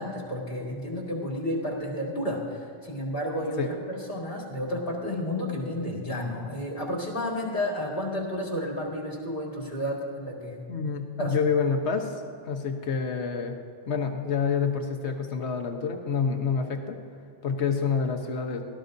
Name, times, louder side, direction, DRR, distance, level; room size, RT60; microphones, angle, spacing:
voice 1, 0.0-10.6 11.2-11.4, left 1 dB, 55° left, -2 dB, 2.3 m, -31 dB
voice 2, 10.7-12.1 12.4-13.5 13.9-17.0 17.4-18.6, left 5 dB, 75° left, 5 dB, 1.3 m, -27 dB
18.0 x 12.5 x 2.6 m, 2.5 s
omnidirectional pair, 1.2 m